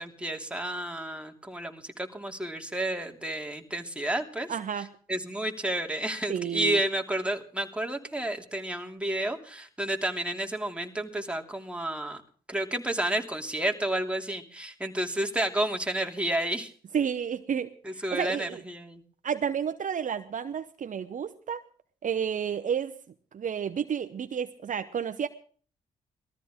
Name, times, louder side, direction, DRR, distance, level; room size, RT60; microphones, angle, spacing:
voice 1, 0.0-4.5 5.1-12.2 12.5-16.7 17.8-19.0, right 1 dB, 5° right, 3 dB, 2.9 m, -31 dB
voice 2, 4.5-4.9 6.3-6.8 16.9-18.6 19.2-21.6 22.0-22.9 23.3-25.3, right 7 dB, 55° right, 10 dB, 0.9 m, -31 dB
19.5 x 14.0 x 3.7 m, 0.44 s
supercardioid pair, 55°, 16 cm